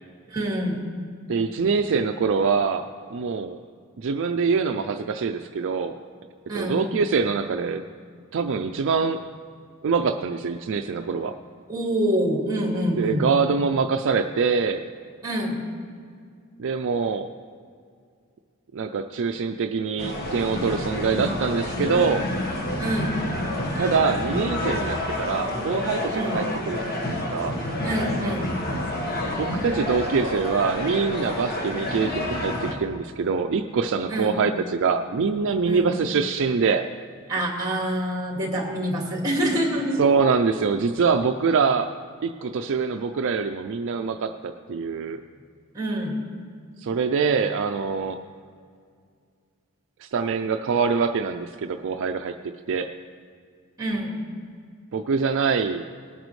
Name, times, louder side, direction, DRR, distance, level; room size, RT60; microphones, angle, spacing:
voice 1, 0.3-0.8 6.5-6.9 11.7-13.3 15.2-15.6 22.8-23.2 26.1-26.4 27.8-28.6 34.1-34.4 35.7-35.9 37.3-40.0 45.7-46.1 53.8-54.2, right 1 dB, 15° right, -1 dB, 2.1 m, -26 dB
voice 2, 1.3-3.6 4.0-6.0 6.5-7.8 8.3-9.2 9.8-11.4 12.9-14.9 16.6-17.3 18.7-22.3 23.8-27.0 27.3-27.6 29.4-36.8 40.0-41.9 42.2-45.2 46.8-48.2 50.0-52.9 54.9-55.8, right 5 dB, 60° right, 6 dB, 0.4 m, -24 dB
sound 1, 20.0-32.7, left 1 dB, 45° left, 1.4 m, -28 dB
18.5 x 9.2 x 3.2 m, 2.2 s
head